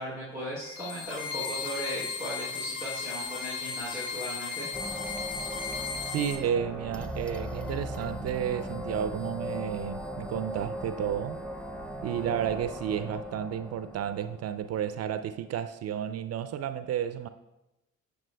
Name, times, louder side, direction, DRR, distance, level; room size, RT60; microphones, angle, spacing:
voice 1, 0.0-4.7, equal, 80° left, 2.0 m, -37 dB
sound 1, 0.6-6.4, left 5 dB, 45° left, 2.9 m, -36 dB
sound 2, 4.7-15.3, equal, 5° left, 0.7 m, -38 dB
voice 2, 6.1-11.4 12.0-17.3, right 9 dB, 40° right, 0.5 m, -32 dB
16.0 x 6.1 x 2.2 m
figure-of-eight pair, 50°, 38 cm